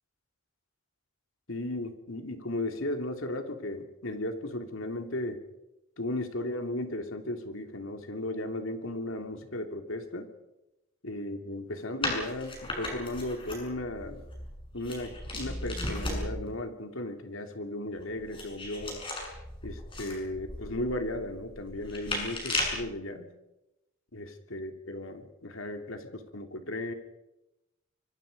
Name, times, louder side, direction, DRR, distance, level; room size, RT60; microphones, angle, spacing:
voice 1, 1.5-5.4 6.0-10.3 11.0-14.2 14.7-19.0 19.6-23.3 24.1-26.9, left 1 dB, 65° left, 6 dB, 2.9 m, -35 dB
sound 1, 12.0-16.5 18.0-22.9, left 1 dB, 25° left, 7.0 m, -36 dB
26.0 x 23.5 x 5.3 m, 0.94 s
head